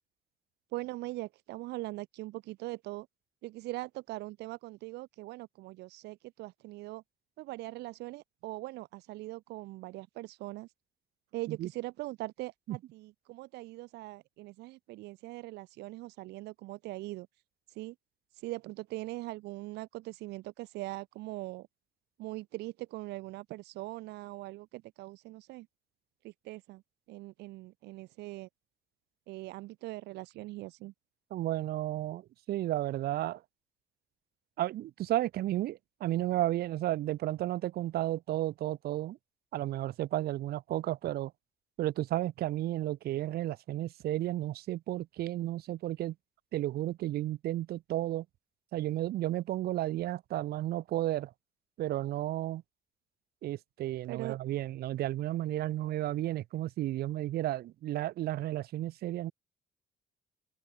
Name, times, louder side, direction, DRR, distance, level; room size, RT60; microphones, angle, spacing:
voice 1, 0.7-3.1 3.4-7.0 7.4-10.7 11.3-17.3 17.7-18.0 18.3-21.7 22.2-25.7 26.2-26.8 27.1-28.5 29.3-30.9 54.1-54.4, right 19 dB, 85° right, 2.0 m, -41 dB
voice 2, 31.3-33.4 34.6-39.2 39.5-41.3 41.8-46.1 46.5-48.2 48.7-51.3 51.8-52.6 53.4-59.3, right 14 dB, 65° right, 1.1 m, -33 dB
cardioid pair, 110°, 17 cm